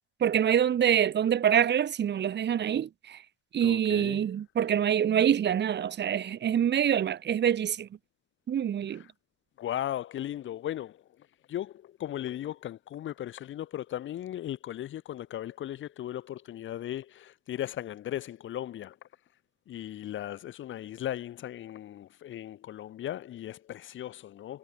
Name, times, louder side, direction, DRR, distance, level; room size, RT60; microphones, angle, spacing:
voice 1, 0.2-3.2 3.5-7.9 8.5-9.0, right 9 dB, 60° right, 3.3 m, -25 dB
voice 2, 3.6-4.2 9.6-19.0 19.7-24.6, left 12 dB, 75° left, 7.6 m, -37 dB
cardioid pair, 90°, 20 cm